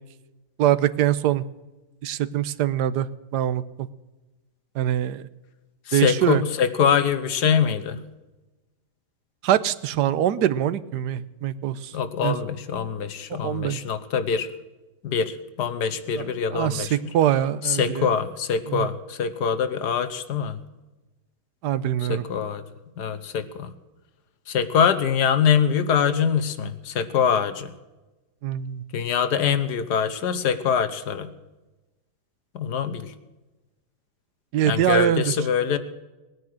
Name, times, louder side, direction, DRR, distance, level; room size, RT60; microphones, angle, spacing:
voice 1, 0.6-1.4 2.0-3.1 3.3-3.6 4.8-5.2 5.9-6.4 9.4-11.9 12.2-12.4 13.3-13.8 16.2-16.3 16.5-18.1 18.7-18.9 21.6-22.2 28.4-28.8 34.5-35.2, right 11 dB, 85° right, 15 dB, 1.3 m, -23 dB
voice 2, 5.9-8.0 11.9-14.5 15.0-17.0 17.6-20.6 22.0-22.6 23.0-23.7 24.5-27.7 28.9-31.3 32.5-33.1 34.6-35.8, left 7 dB, 80° left, 11 dB, 1.6 m, -24 dB
19.0 x 9.6 x 6.4 m, 1.1 s
omnidirectional pair, 1.8 m